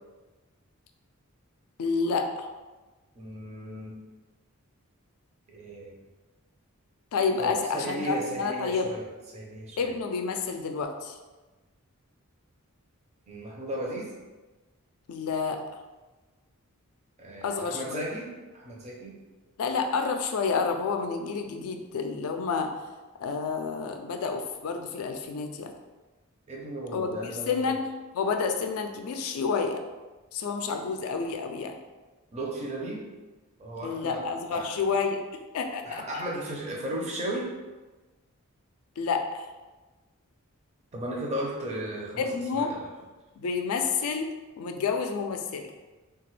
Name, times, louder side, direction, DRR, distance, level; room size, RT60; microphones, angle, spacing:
voice 1, 1.8-2.5 7.1-8.9 9.8-11.2 15.1-15.6 17.4-18.1 19.6-22.7 23.2-25.7 26.9-27.8 28.1-29.8 30.3-31.8 33.8-35.2 35.5-36.0 39.0-39.5 42.2-42.7 43.4-45.7, left 5 dB, 75° left, 6 dB, 0.3 m, -29 dB
voice 2, 3.2-4.0 5.5-6.0 7.4-9.0 9.3-9.8 13.3-14.1 17.2-19.2 26.5-27.7 32.3-33.0 33.6-34.2 34.5-34.8 35.8-37.5 40.9-42.9, right 1 dB, 30° right, -2 dB, 0.5 m, -35 dB
2.9 x 2.3 x 3.1 m, 1.2 s
head